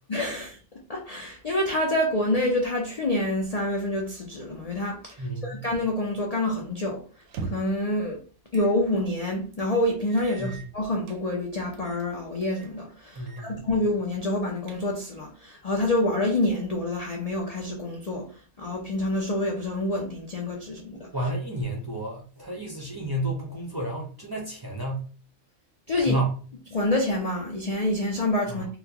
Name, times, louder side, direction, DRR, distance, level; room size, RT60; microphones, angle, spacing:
voice 1, 0.1-0.6 0.9-7.0 7.5-8.2 8.5-18.3 18.6-21.1 25.9-26.1 26.7-28.7, left 1 dB, 70° left, 0.3 m, -27 dB
voice 2, 5.2-5.7 10.4-10.6 13.1-13.7 21.1-25.1 26.0-26.4 28.5-28.7, right 1 dB, 25° right, 0.5 m, -31 dB
sound 1, 7.2-7.8 8.5-8.8 9.1-9.2 10.1-11.2 11.7-12.1 12.4-12.7 13.2-13.5 13.8-13.9 14.4-15.2, right 5 dB, 90° right, 1.1 m, -40 dB
4.1 x 2.1 x 2.8 m
omnidirectional pair, 1.5 m